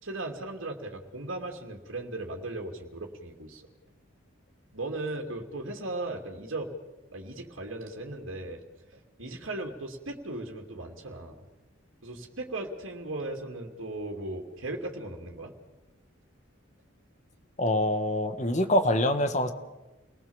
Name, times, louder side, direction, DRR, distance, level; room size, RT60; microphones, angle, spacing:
voice 1, 0.0-3.6 4.7-6.7 7.1-8.6 8.9-11.4 12.0-15.5, right 2 dB, 75° right, 2 dB, 2.8 m, -37 dB
voice 2, 17.6-19.5, left 1 dB, 35° left, 9 dB, 1.6 m, -25 dB
28.5 x 19.5 x 7.2 m, 1.1 s
head